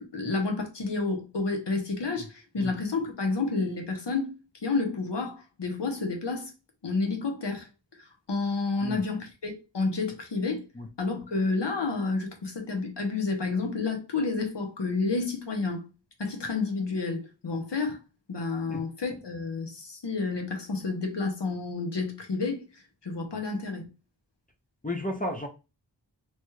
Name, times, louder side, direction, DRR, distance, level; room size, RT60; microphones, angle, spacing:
voice 1, 0.0-4.3 4.6-6.5 6.8-7.7 8.0-10.6 11.0-15.8 16.2-18.0 18.3-22.6 23.0-23.8, left 3 dB, 65° left, 0.9 m, -30 dB
voice 2, 24.8-25.5, left 1 dB, 20° left, 0.5 m, -33 dB
3.0 x 2.3 x 3.1 m
wide cardioid pair, 45°, 45 cm